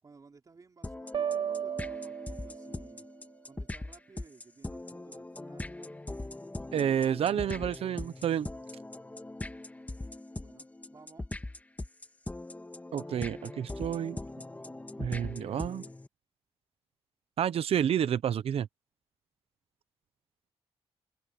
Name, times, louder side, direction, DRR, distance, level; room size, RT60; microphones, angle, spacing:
voice 1, 0.0-3.1 3.4-6.1 10.4-11.3, right 4 dB, 35° right, 4.3 m, -57 dB
sound 1, 0.8-16.1, left 2 dB, 15° left, 1.8 m, -41 dB
sound 2, 1.1-3.0, right 8 dB, 50° right, 0.5 m, -35 dB
voice 2, 6.7-8.5 12.9-14.2 15.0-15.8 17.4-18.7, right 9 dB, 75° right, 0.9 m, -29 dB
cardioid pair, 110°, 10 cm